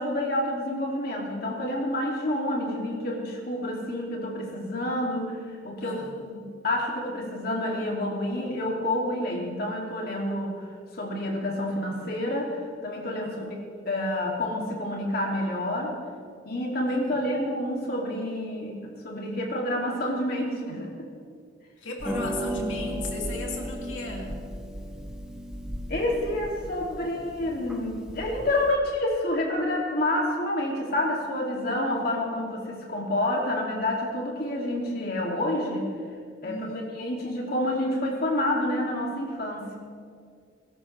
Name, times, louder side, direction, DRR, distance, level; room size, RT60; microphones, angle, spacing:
voice 1, 0.0-5.4 5.6-10.6 10.9-12.6 12.8-16.0 16.4-21.1 25.9-35.9 36.4-39.8, left 1 dB, 55° left, -2 dB, 2.9 m, -28 dB
voice 2, 5.8-6.5 13.2-13.9 16.8-17.2 21.8-24.4 36.4-36.9, left 2 dB, 80° left, -1 dB, 3.0 m, -37 dB
Harp, 22.0-28.7, equal, 5° right, 1.5 m, -35 dB
22.0 x 13.0 x 3.5 m, 2.1 s
head